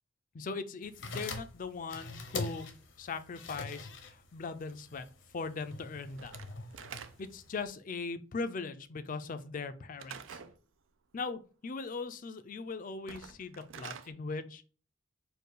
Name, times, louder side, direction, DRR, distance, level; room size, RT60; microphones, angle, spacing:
voice 1, 0.3-2.7 3.0-5.0 5.3-6.3 7.2-10.4 11.1-14.6, left 4 dB, 45° left, 11 dB, 0.4 m, -39 dB
sound 1, 0.8-7.7, left 3 dB, 70° left, 0.8 m, -44 dB
Slam / Wood, 6.2-7.5 10.0-10.6 13.0-14.1, right 7 dB, 80° right, 0.4 m, -47 dB
4.5 x 2.3 x 4.7 m, 0.38 s
head